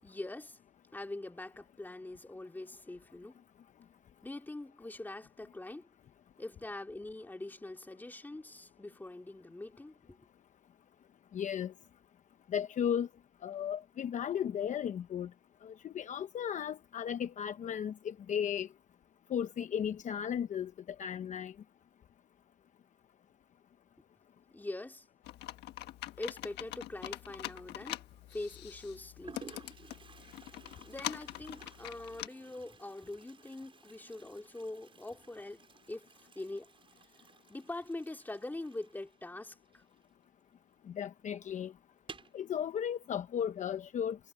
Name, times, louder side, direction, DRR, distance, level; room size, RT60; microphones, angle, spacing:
voice 1, 0.0-0.6 0.9-3.4 4.2-5.9 6.4-10.2 24.5-25.1 26.2-28.0 28.3-29.5 30.8-36.7 37.5-39.8, left 2 dB, 10° left, 2.8 m, -43 dB
voice 2, 11.3-11.7 12.5-13.1 13.4-15.3 15.6-18.7 19.3-20.7 21.0-21.5 40.9-41.7 42.3-44.2, left 8 dB, 45° left, 0.9 m, -35 dB
Computer keyboard, 25.2-32.3, left 15 dB, 85° left, 1.4 m, -44 dB
Toilet flush, 27.7-28.2 28.9-29.0 29.2-40.5 40.8-40.9 41.2-41.3 41.9-42.4, right 5 dB, 30° right, 6.1 m, -56 dB
cardioid pair, 110°, 17 cm